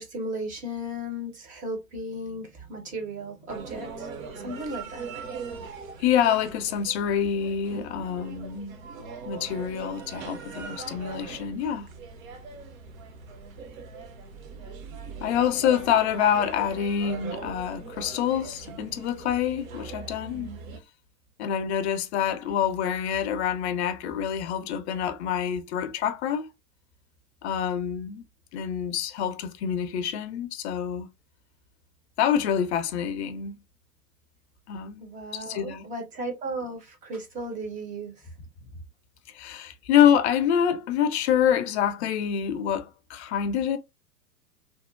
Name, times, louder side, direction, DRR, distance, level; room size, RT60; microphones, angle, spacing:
voice 1, 0.0-5.1 35.0-38.3, right 1 dB, 15° right, 0.6 m, -35 dB
sound 1, 3.5-20.8, right 5 dB, 55° right, 0.8 m, -41 dB
voice 2, 6.0-8.8 9.2-11.9 15.2-20.5 21.4-26.5 27.4-28.2 28.5-31.1 32.2-33.6 34.7-35.1 35.3-35.8 39.3-43.8, left 9 dB, 45° left, 0.5 m, -26 dB
2.9 x 2.1 x 2.3 m
figure-of-eight pair, 100°, 49 cm